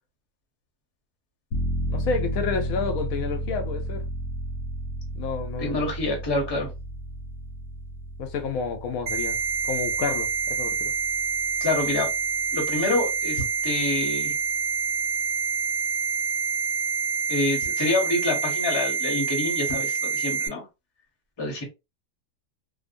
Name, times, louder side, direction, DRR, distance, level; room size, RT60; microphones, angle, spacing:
sound 1, 1.5-14.0 14.4-14.5, right 1 dB, 65° left, 0.8 m, -33 dB
voice 1, 1.9-4.1 5.1-5.9 8.2-9.4 9.6-10.9, left 5 dB, 85° left, 1.1 m, -30 dB
voice 2, 5.6-6.7 11.6-12.1 12.5-14.3 17.3-20.7 21.4-21.6, left 2 dB, 25° left, 0.7 m, -27 dB
sound 2, 9.1-20.5, right 5 dB, 85° right, 1.2 m, -27 dB
2.6 x 2.1 x 2.5 m
omnidirectional pair, 1.4 m